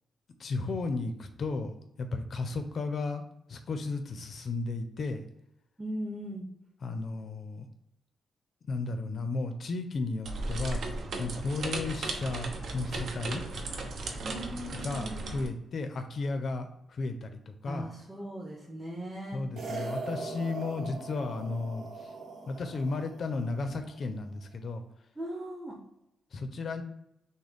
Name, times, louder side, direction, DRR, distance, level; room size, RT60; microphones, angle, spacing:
voice 1, 0.4-1.7 2.0-3.2 3.5-5.2 6.8-7.7 8.7-10.9 11.2-13.4 14.8-17.9 19.3-22.1 22.5-24.8 26.3-26.8, left 3 dB, 45° left, 7 dB, 0.6 m, -34 dB
voice 2, 5.8-6.5 14.2-15.5 17.7-19.4 25.2-25.8, right 1 dB, 5° right, -2 dB, 0.6 m, -39 dB
sound 1, 10.2-15.5, right 2 dB, 60° right, 0.7 m, -36 dB
sound 2, 19.6-24.0, right 3 dB, 85° right, 1.1 m, -40 dB
6.3 x 2.1 x 3.4 m, 0.81 s
wide cardioid pair, 165°, 0 cm